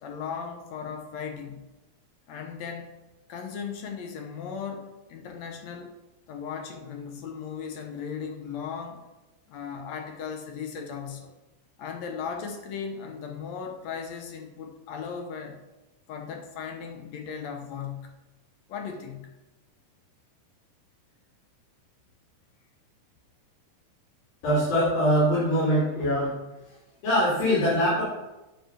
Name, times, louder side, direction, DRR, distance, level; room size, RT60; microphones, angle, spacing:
voice 1, 0.0-1.6 2.3-2.9 3.3-5.9 6.3-9.0 9.5-11.3 11.8-15.6 16.1-18.1 18.7-19.3, left 6 dB, 70° left, 4 dB, 1.8 m, -37 dB
voice 2, 24.4-26.3 27.0-28.0, equal, 85° left, -9 dB, 4.6 m, -23 dB
9.3 x 4.3 x 6.6 m, 1.0 s
omnidirectional pair, 3.9 m